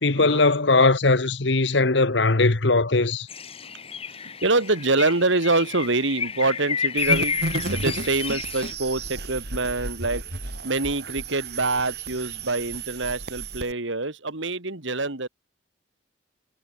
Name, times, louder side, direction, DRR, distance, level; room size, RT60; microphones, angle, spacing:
voice 1, 0.0-3.3, left 3 dB, 65° left, 1.3 m, -20 dB
sound 1, 3.3-8.7, left 6 dB, 30° left, 1.6 m, -30 dB
voice 2, 4.1-7.4 7.7-15.3, right 3 dB, 70° right, 2.4 m, -25 dB
sound 2, 7.0-13.7, right 3 dB, 55° right, 4.7 m, -33 dB
head